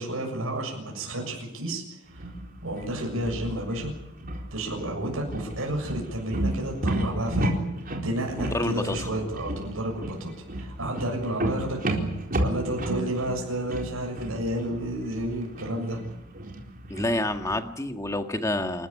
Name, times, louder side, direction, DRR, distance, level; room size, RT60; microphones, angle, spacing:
voice 1, 0.0-2.3 2.6-3.9 4.5-7.6 8.0-12.0 12.4-16.0, right 1 dB, 70° right, 0 dB, 7.0 m, -31 dB
sound 1, 2.1-17.6, right 1 dB, 40° right, 4.2 m, -33 dB
voice 2, 8.4-9.1 16.9-18.9, left 1 dB, 15° left, 6 dB, 1.8 m, -28 dB
28.5 x 14.0 x 10.0 m, 0.88 s
head